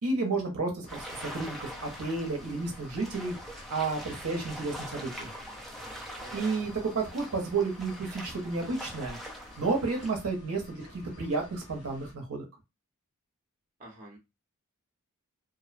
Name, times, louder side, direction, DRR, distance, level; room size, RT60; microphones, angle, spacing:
voice 1, 0.0-3.3 3.7-5.4 6.3-9.2 9.6-12.4, right 3 dB, 70° right, 1 dB, 0.7 m, -31 dB
sound 1, 0.8-12.1, left 1 dB, 85° left, 1.0 m, -51 dB
sound 2, 0.9-10.1, equal, ahead, 0.4 m, -44 dB
voice 2, 6.2-6.7 13.8-14.2, right 2 dB, 35° right, 0 dB, 0.8 m, -48 dB
2.5 x 2.0 x 2.4 m, 0.24 s
head